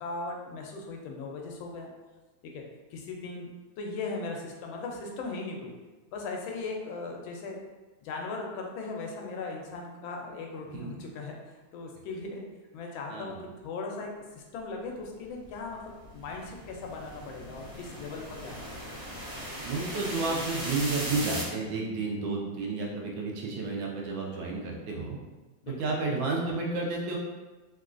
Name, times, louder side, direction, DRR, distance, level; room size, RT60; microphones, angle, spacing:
voice 1, 0.0-1.9 2.4-2.7 2.9-3.5 3.8-5.7 6.1-7.6 8.0-11.4 11.7-12.4 12.7-18.9 25.6-25.9, left 3 dB, 85° left, 0 dB, 1.3 m, -38 dB
voice 2, 13.1-13.4 19.6-25.2 25.7-27.2, right 3 dB, 80° right, -1 dB, 1.3 m, -31 dB
sound 1, 15.4-21.4, equal, 40° right, 1.1 m, -38 dB
3.5 x 2.3 x 2.4 m, 1.2 s
omnidirectional pair, 2.1 m